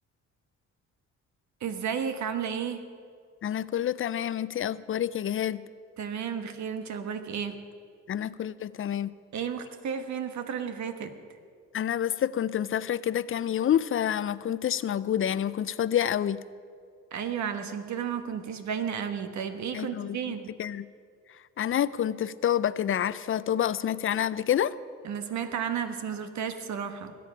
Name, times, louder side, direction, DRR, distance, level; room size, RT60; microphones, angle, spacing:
voice 1, 1.6-2.9 6.0-7.6 9.3-11.1 17.1-20.5 25.0-27.2, right 7 dB, 65° right, 8 dB, 1.2 m, -33 dB
voice 2, 3.4-5.6 8.1-9.1 11.7-16.4 19.7-20.2 20.6-20.9 21.6-24.7, left 10 dB, 45° left, 17 dB, 0.5 m, -28 dB
21.0 x 8.6 x 6.0 m, 2.2 s
cardioid pair, 90°, 30 cm